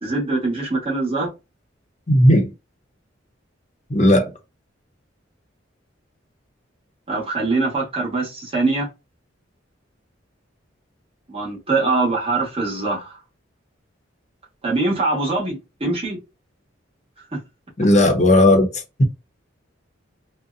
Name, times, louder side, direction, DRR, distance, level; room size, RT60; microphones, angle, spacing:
voice 1, 0.0-1.3 7.1-8.9 11.3-13.2 14.6-16.2 17.3-17.4, right 3 dB, 30° right, 1.1 m, -23 dB
voice 2, 2.1-2.5 3.9-4.3 17.8-18.7 19.0-19.1, left 1 dB, 40° left, 0.7 m, -14 dB
2.7 x 2.1 x 2.3 m
head